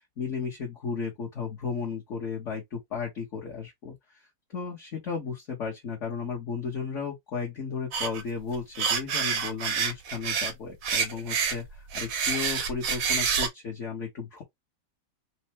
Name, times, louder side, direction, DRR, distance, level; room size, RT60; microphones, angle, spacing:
voice 1, 0.0-4.2 4.5-14.4, left 5 dB, 45° left, 1.2 m, -34 dB
sound 1, 7.9-8.2 8.5-10.5 10.8-13.5, right 6 dB, 60° right, 1.0 m, -28 dB
4.4 x 2.3 x 2.9 m
omnidirectional pair, 2.1 m